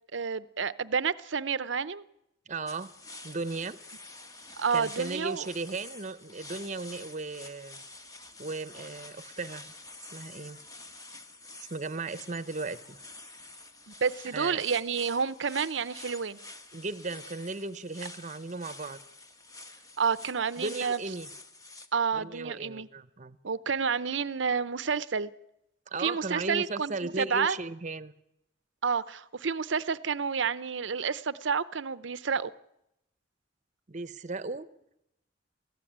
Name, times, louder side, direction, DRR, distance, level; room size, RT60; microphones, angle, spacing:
voice 1, 0.1-2.0 4.6-5.5 14.0-16.4 20.0-21.0 21.9-22.9 23.4-25.3 26.0-27.6 28.8-32.5, right 6 dB, 80° right, 0.7 m, -29 dB
voice 2, 2.5-2.9 3.2-3.8 4.7-7.8 8.4-9.7 10.1-10.6 11.7-13.0 14.3-14.6 16.7-19.0 20.6-21.3 22.1-23.4 25.9-28.1 33.9-34.7, right 3 dB, 40° right, 0.9 m, -36 dB
sound 1, 2.7-21.9, left 2 dB, 20° left, 1.4 m, -48 dB
23.0 x 15.5 x 8.8 m
head